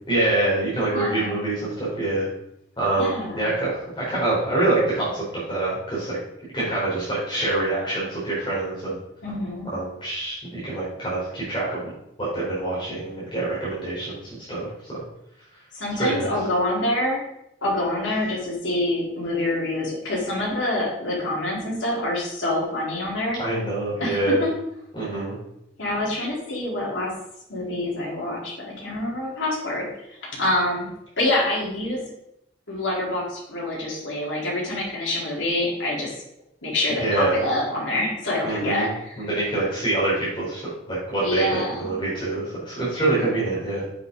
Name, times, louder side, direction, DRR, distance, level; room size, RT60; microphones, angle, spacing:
voice 1, 0.1-2.3 2.8-6.2 6.5-9.0 9.7-11.9 12.2-15.0 16.0-16.3 23.4-24.4 24.9-25.4 37.0-37.4 38.4-38.9 39.2-43.8, right 2 dB, 25° left, -8 dB, 4.6 m, -25 dB
voice 2, 0.9-1.4 3.0-3.5 9.2-9.7 15.7-17.3 17.6-23.4 24.0-24.5 25.8-27.1 27.5-30.9 31.2-32.1 32.7-36.1 36.6-39.3 41.2-41.9, left 1 dB, 80° left, -4 dB, 4.3 m, -26 dB
9.4 x 8.5 x 4.1 m, 0.79 s
head